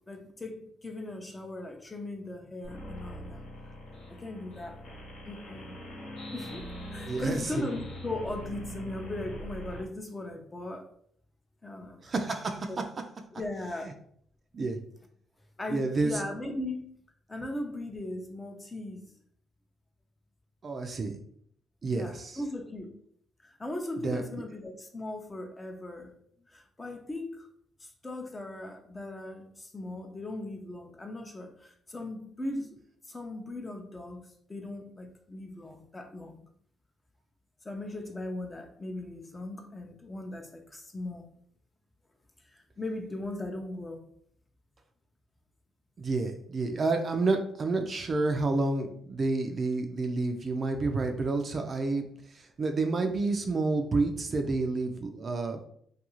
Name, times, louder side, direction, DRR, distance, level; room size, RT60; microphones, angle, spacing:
voice 1, 0.1-3.4 4.1-4.8 5.3-5.8 6.3-10.9 11.6-12.1 12.7-12.8 13.3-13.9 15.6-16.8 17.3-19.0 21.9-22.9 23.4-26.1 26.5-27.5 27.8-32.8 33.1-36.5 37.6-41.3 42.5-44.0, left 1 dB, 20° left, 4 dB, 0.5 m, -38 dB
sound 1, 2.6-9.8, equal, 85° left, 1.0 m, -42 dB
voice 2, 7.1-7.7 12.0-12.7 13.8-13.9 14.5-14.8 15.7-16.2 20.6-21.2 21.8-22.4 24.0-24.4 46.0-55.6, right 3 dB, 40° right, 5 dB, 0.4 m, -29 dB
2.4 x 2.3 x 2.9 m, 0.64 s
cardioid pair, 90°, 0 cm